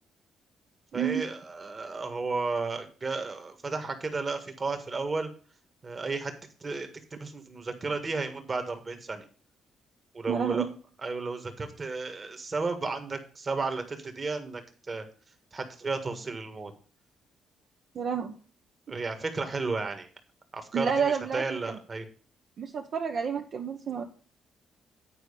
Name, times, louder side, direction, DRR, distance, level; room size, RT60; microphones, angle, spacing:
voice 1, 0.9-5.3 5.8-6.3 6.6-9.2 10.1-10.7 11.0-15.0 15.5-16.7 18.9-20.1 20.5-22.1, right 3 dB, 35° right, 7 dB, 1.7 m, -33 dB
voice 2, 10.3-10.7 17.9-18.3 20.7-21.8 22.6-24.0, right 7 dB, 55° right, 2 dB, 0.9 m, -30 dB
9.2 x 4.7 x 6.6 m, 0.41 s
cardioid pair, 90°, 0 cm